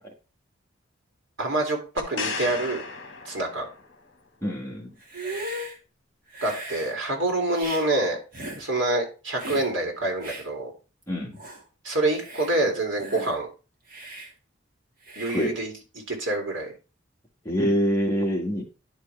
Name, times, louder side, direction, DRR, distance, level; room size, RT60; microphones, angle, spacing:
voice 1, 1.4-1.8 2.1-2.8 3.3-3.7 6.4-8.2 8.6-10.7 11.8-13.5 15.2-15.7 16.1-16.7, right 2 dB, 75° right, 1 dB, 2.4 m, -26 dB
sound 1, 2.0-4.0 7.6-7.7, left 5 dB, 60° left, 1.3 m, -34 dB
voice 2, 4.4-4.9 11.1-11.4 15.3-15.6 17.4-18.6, equal, 15° left, -2 dB, 1.7 m, -25 dB
Hiss, 5.0-5.8 6.3-6.9 7.5-7.8 8.3-8.6 9.4-9.7 10.2-10.5 11.0-11.1 11.4-11.6 12.1-12.5 13.0-13.4 13.9-14.3 15.1-15.5, right 1 dB, 45° right, 1.8 m, -37 dB
10.5 x 4.8 x 3.2 m, 0.33 s
head